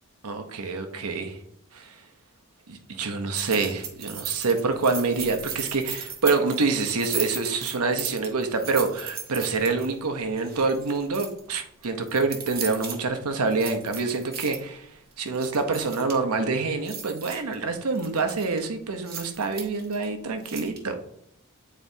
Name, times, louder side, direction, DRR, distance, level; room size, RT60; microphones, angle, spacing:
voice 1, 0.2-1.4 1.7-1.9 2.7-14.8 15.2-20.9, right 4 dB, 85° right, 6 dB, 0.9 m, -26 dB
sound 1, 3.3-9.9 10.4-11.4 11.8-13.0 13.5-14.6 15.1-16.3 16.7-17.5 18.0-18.6 19.1-20.1 20.4-20.8, right 7 dB, 45° right, 1.0 m, -36 dB
9.3 x 4.1 x 2.7 m, 0.71 s
head